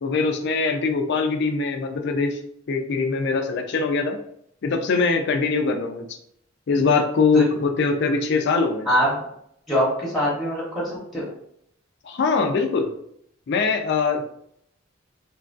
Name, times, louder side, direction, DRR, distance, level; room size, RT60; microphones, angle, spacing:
voice 1, 0.0-2.4 2.7-4.2 4.6-6.1 6.7-8.9 12.0-12.9 13.5-14.3, left 4 dB, 60° left, 5 dB, 0.4 m, -22 dB
voice 2, 8.8-9.2 9.7-11.3, equal, ahead, -6 dB, 0.9 m, -23 dB
2.9 x 2.4 x 2.4 m, 0.71 s
head